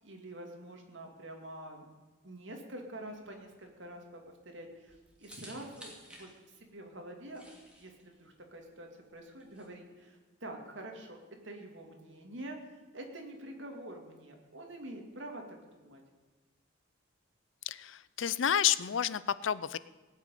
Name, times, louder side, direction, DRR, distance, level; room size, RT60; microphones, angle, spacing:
voice 1, 0.0-1.9 2.2-4.2 4.5-7.4 7.8-11.2 11.4-12.6 12.9-16.0, right 1 dB, 65° right, 2 dB, 2.6 m, -46 dB
sound 1, 3.1-9.6, equal, 5° right, 2.6 m, -55 dB
voice 2, 17.7-19.8, left 9 dB, 75° left, 17 dB, 0.5 m, -30 dB
18.5 x 6.3 x 9.2 m, 1.3 s
head